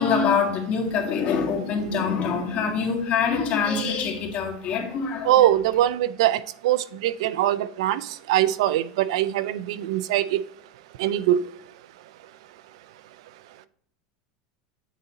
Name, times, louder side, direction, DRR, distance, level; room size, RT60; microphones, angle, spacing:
voice 1, 0.0-5.5, left 5 dB, 45° left, 1.8 m, -25 dB
voice 2, 5.2-8.0 8.3-10.4 11.0-11.4, right 13 dB, 75° right, 0.4 m, -22 dB
8.2 x 3.9 x 3.9 m
supercardioid pair, 110°, 3 cm